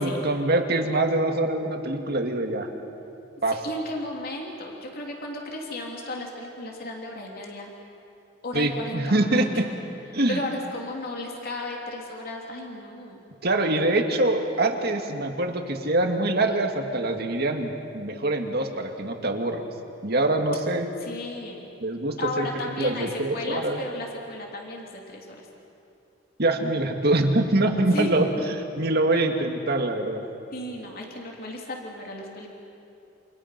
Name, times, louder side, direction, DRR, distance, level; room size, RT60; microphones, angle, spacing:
voice 1, 0.0-2.7 3.4-3.6 8.5-9.7 10.1-10.4 13.4-19.6 20.0-20.9 21.8-23.8 26.4-28.3 28.6-30.3, right 2 dB, 55° right, 4 dB, 2.1 m, -24 dB
voice 2, 3.6-7.7 8.4-9.5 10.3-13.2 21.0-21.6 22.2-25.5 27.9-28.1 29.1-29.2 30.5-32.5, left 1 dB, 50° left, 0 dB, 3.5 m, -34 dB
29.0 x 28.0 x 6.0 m, 2.7 s
head